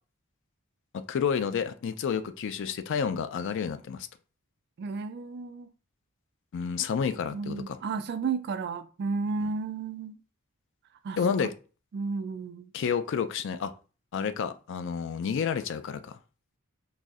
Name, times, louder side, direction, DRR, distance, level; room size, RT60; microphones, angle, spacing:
voice 1, 0.9-4.1 6.5-7.8 11.2-11.5 12.7-13.7 14.1-16.2, left 6 dB, 55° left, 0.3 m, -30 dB
voice 2, 4.8-5.7 7.3-10.2 11.0-11.5 11.9-12.7, right 4 dB, 50° right, 0.3 m, -33 dB
4.0 x 2.7 x 2.4 m
head